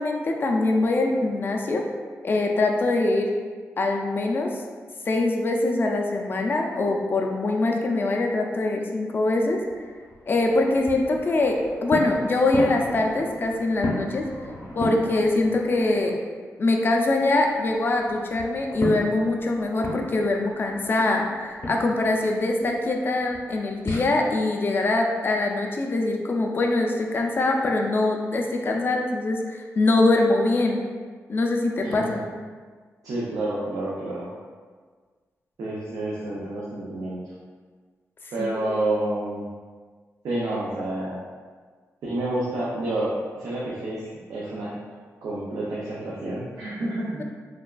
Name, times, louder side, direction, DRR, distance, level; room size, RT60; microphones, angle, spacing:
voice 1, 0.0-1.8 2.2-3.3 3.8-4.6 5.1-9.6 10.3-14.2 14.8-16.1 16.6-30.8 31.3-32.2 38.4-38.8, left 2 dB, 40° left, 1 dB, 0.4 m, -23 dB
sound 1, 9.4-16.2 16.6-24.1, left 1 dB, 70° left, 0.7 m, -35 dB
voice 2, 31.8-32.2 33.0-34.3 35.6-37.2 38.3-39.4 40.2-41.2 42.0-44.7 45.2-47.2, right 1 dB, 80° right, -7 dB, 0.5 m, -29 dB
3.3 x 2.3 x 2.2 m, 1.5 s
wide cardioid pair, 100°, 6 cm